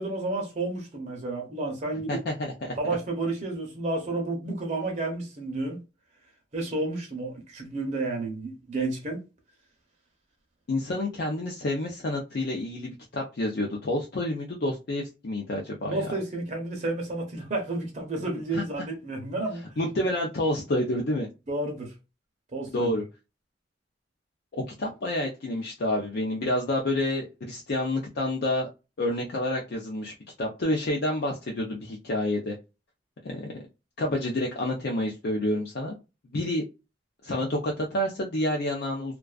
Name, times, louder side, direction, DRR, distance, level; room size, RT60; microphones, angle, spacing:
voice 1, 0.0-2.2 2.8-5.8 6.5-9.2 15.9-19.8 21.5-21.9 22.5-22.9, right 2 dB, 40° right, 0.6 m, -31 dB
voice 2, 2.1-2.8 10.7-16.0 18.5-18.6 19.8-21.3 22.7-23.0 24.5-28.7 29.0-30.1 30.4-32.5 33.2-33.5 34.0-36.0 36.3-36.6 37.2-39.2, left 1 dB, 60° left, 0.5 m, -28 dB
2.3 x 2.3 x 2.3 m
head